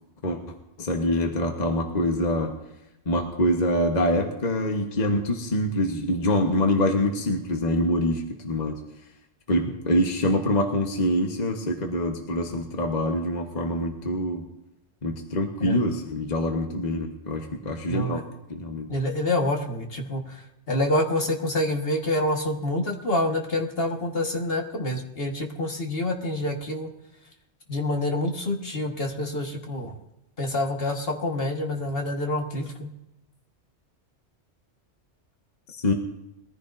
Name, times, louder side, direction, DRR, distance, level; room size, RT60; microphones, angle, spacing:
voice 1, 0.8-2.5 3.1-8.8 9.5-14.4 15.0-18.2 18.5-18.9 35.7-35.9, left 1 dB, 40° left, 3 dB, 1.2 m, -25 dB
voice 2, 17.9-18.2 18.9-26.9 27.7-29.9 30.4-32.9, left 1 dB, 55° left, 2 dB, 1.7 m, -27 dB
21.0 x 14.5 x 2.6 m, 0.90 s
omnidirectional pair, 1.2 m